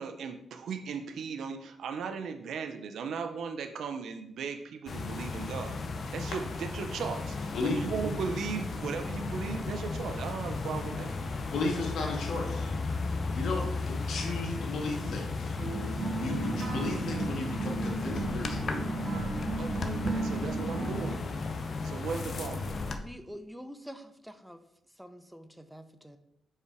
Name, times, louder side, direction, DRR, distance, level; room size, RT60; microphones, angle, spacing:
voice 1, 0.0-5.8 6.1-11.1 19.6-21.2 21.8-22.7, right 6 dB, 75° right, 7 dB, 0.6 m, -37 dB
sound 1, 4.9-23.0, left 3 dB, 55° left, 0.8 m, -35 dB
voice 2, 11.5-12.8 13.3-15.6 16.2-18.8, left 3 dB, 75° left, 1 dB, 1.8 m, -35 dB
sound 2, 15.6-21.1, right 3 dB, 50° right, 1.7 m, -34 dB
voice 3, 23.0-24.6 24.9-26.2, equal, ahead, 8 dB, 0.7 m, -46 dB
5.4 x 4.9 x 4.9 m, 0.78 s
cardioid pair, 75°, 0 cm